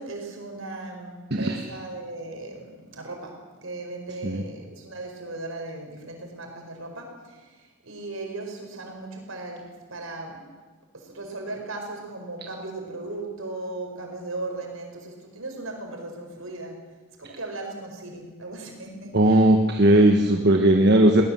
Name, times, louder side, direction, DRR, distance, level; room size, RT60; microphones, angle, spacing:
voice 1, 0.0-10.5 10.9-16.9 17.2-19.5, right 2 dB, 70° right, 3 dB, 5.1 m, -37 dB
voice 2, 19.1-21.2, right 1 dB, 50° right, 3 dB, 1.3 m, -17 dB
21.0 x 18.5 x 7.5 m, 1.4 s
head